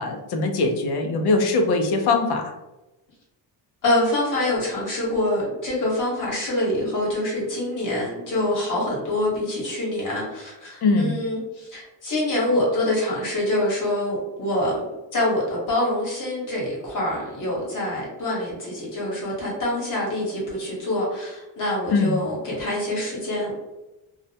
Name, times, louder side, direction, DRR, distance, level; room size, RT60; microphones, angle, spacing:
voice 1, 0.0-2.5 10.8-11.1 21.9-22.2, left 3 dB, 60° left, 4 dB, 0.6 m, -21 dB
voice 2, 3.8-14.8 15.1-23.5, left 1 dB, 45° left, -4 dB, 1.1 m, -25 dB
2.3 x 2.0 x 2.7 m, 1.0 s
cardioid pair, 130°, 45 cm